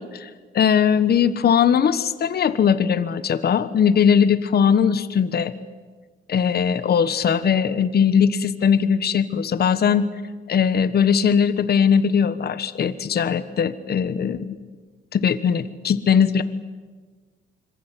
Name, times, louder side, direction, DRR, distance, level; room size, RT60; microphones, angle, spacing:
voice 1, 0.0-5.5 6.3-10.1 10.5-14.6 15.1-16.4, left 7 dB, 55° left, 13 dB, 1.4 m, -20 dB
26.5 x 22.0 x 9.2 m, 1.4 s
cardioid pair, 90°, 20 cm